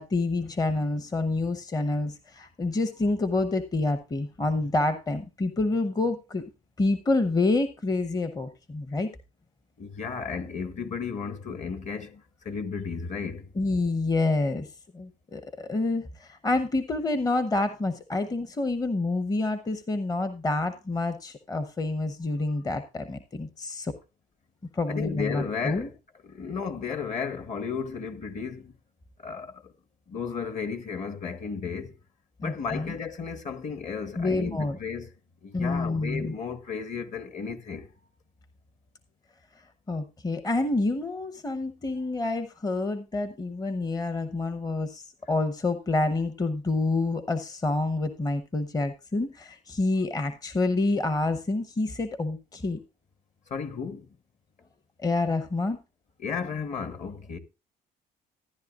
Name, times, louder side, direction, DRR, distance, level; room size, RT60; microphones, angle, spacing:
voice 1, 0.0-6.4 6.8-9.1 13.6-23.9 24.7-25.9 32.4-32.9 34.2-34.8 35.5-36.3 39.9-52.8 55.0-55.8, left 2 dB, 20° left, 0.8 m, -28 dB
voice 2, 9.8-13.5 24.9-25.9 26.2-28.7 29.2-29.7 30.1-32.0 32.4-35.1 35.4-37.9 53.5-54.1 56.2-57.4, left 5 dB, 45° left, 1.4 m, -34 dB
14.0 x 10.5 x 2.4 m
cardioid pair, 110°, 17 cm